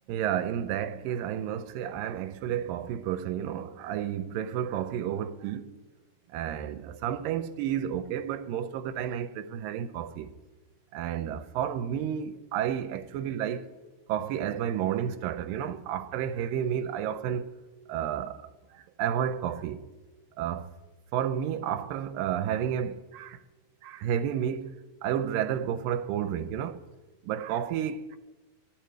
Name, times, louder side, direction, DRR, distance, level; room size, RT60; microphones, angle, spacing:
voice 1, 0.1-5.7 6.3-10.3 10.9-13.7 14.1-17.5 17.9-19.8 20.4-20.7 21.1-23.4 23.8-26.8 27.2-28.2, right 9 dB, 90° right, 2.3 m, -31 dB
15.0 x 11.5 x 4.9 m
omnidirectional pair, 4.0 m